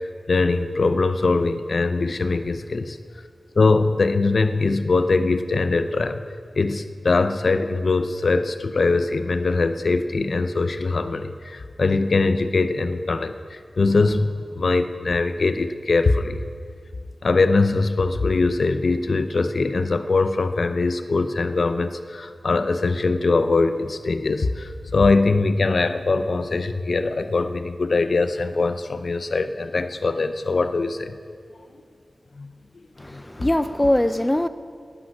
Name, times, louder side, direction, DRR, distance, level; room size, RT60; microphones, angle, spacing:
voice 1, 0.3-3.0 3.6-6.2 6.6-16.4 17.2-31.2 32.4-32.5 33.1-33.2, left 3 dB, 65° left, 10 dB, 0.5 m, -22 dB
voice 2, 33.0-34.5, left 1 dB, 15° left, 12 dB, 0.4 m, -21 dB
12.0 x 9.8 x 6.3 m, 2.2 s
wide cardioid pair, 80°, 0 cm